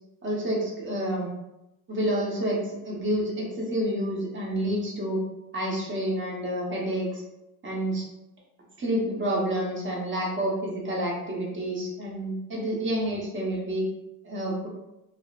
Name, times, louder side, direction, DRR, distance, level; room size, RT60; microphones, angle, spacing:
voice 1, 0.2-1.3 1.9-5.2 5.5-7.2 7.6-8.0 8.8-13.8 14.2-14.7, right 1 dB, 30° right, -3 dB, 0.9 m, -29 dB
2.7 x 2.0 x 2.3 m, 0.93 s
cardioid pair, 95°, 38 cm